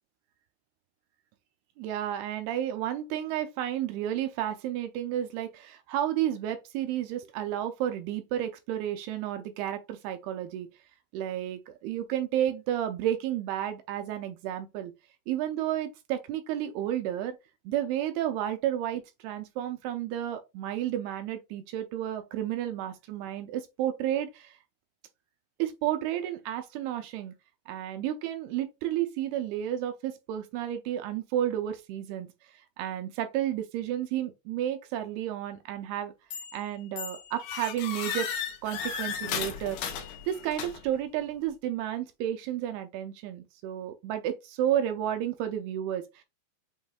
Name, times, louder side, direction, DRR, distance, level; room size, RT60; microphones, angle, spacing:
voice 1, 1.8-10.7 11.1-14.9 15.3-17.4 17.7-24.6 25.6-27.3 27.7-32.3 32.5-36.1 36.5-38.3 38.6-40.0 40.3-46.2, right 11 dB, 80° right, 2.3 m, -32 dB
sound 1, 36.3-36.6 37.0-41.0, left 7 dB, 85° left, 1.8 m, -35 dB
7.2 x 3.0 x 2.4 m
omnidirectional pair, 5.0 m